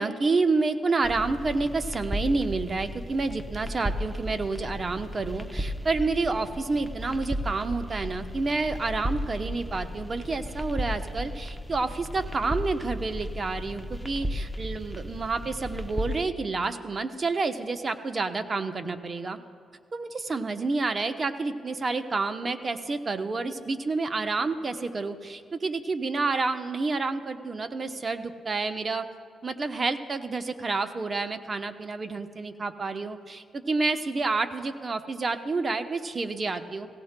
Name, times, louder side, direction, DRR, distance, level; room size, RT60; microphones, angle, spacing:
voice 1, 0.0-19.4 19.9-29.1 29.4-36.9, right 3 dB, 40° right, 8 dB, 0.8 m, -29 dB
sound 1, 1.0-16.2, equal, ahead, 0.8 m, -35 dB
17.5 x 16.0 x 2.2 m, 2.3 s
cardioid pair, 65°, 0 cm